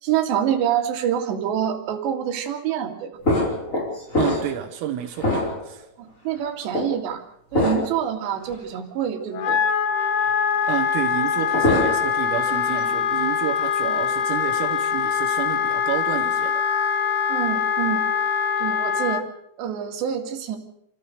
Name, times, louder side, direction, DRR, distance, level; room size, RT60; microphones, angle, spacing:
voice 1, 0.0-3.1 6.0-7.2 7.5-9.6 13.8-13.9 17.3-18.0 18.6-19.2 19.6-20.6, right 9 dB, 65° right, 2 dB, 4.2 m, -26 dB
sound 1, 3.2-4.7 5.2-5.8 6.7-6.9 7.5-8.0 8.5-8.6 11.3-12.2 12.5-12.9, left 1 dB, 15° left, 4.6 m, -24 dB
voice 2, 4.2-5.9 10.7-16.6, right 12 dB, 85° right, 5 dB, 3.9 m, -30 dB
Wind instrument woodwind instrument, 9.3-19.2, left 7 dB, 90° left, 1.8 m, -23 dB
29.0 x 14.0 x 6.6 m, 0.72 s
omnidirectional pair, 5.8 m